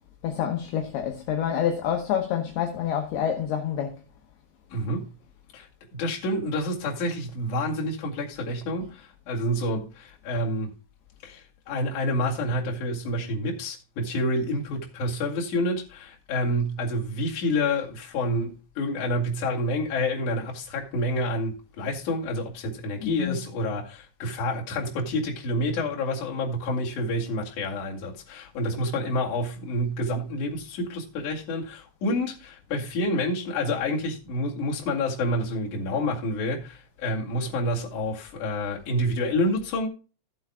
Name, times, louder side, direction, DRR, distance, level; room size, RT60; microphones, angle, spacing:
voice 1, 0.2-4.0 23.0-23.4, left 9 dB, 70° left, 2.8 m, -27 dB
voice 2, 4.7-5.1 5.5-10.7 11.2-39.9, left 1 dB, 50° left, 3.1 m, -28 dB
17.0 x 8.0 x 2.2 m
omnidirectional pair, 5.4 m